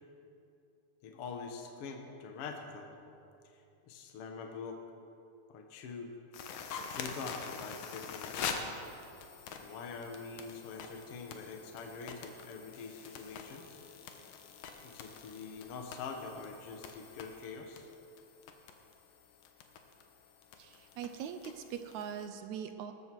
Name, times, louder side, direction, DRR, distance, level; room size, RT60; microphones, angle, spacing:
voice 1, 1.0-3.0 3.5-4.8 5.5-6.1 6.9-8.7 9.6-13.8 14.8-17.9, left 4 dB, 55° left, 3 dB, 1.9 m, -45 dB
sound 1, 6.3-22.3, left 6 dB, 80° left, 2.7 m, -46 dB
voice 2, 20.6-22.9, right 8 dB, 75° right, 8 dB, 1.8 m, -42 dB
20.5 x 13.0 x 4.7 m, 2.6 s
omnidirectional pair, 3.8 m